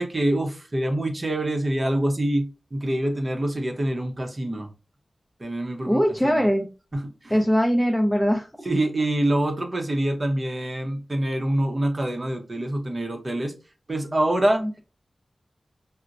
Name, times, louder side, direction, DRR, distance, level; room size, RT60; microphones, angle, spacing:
voice 1, 0.0-4.7 5.4-6.5 6.9-7.4 8.6-13.5 13.9-14.6, right 1 dB, 45° right, 0.7 m, -25 dB
voice 2, 5.9-6.7 7.3-8.5, equal, 5° right, 0.5 m, -21 dB
4.0 x 2.1 x 2.4 m
cardioid pair, 55°, 0 cm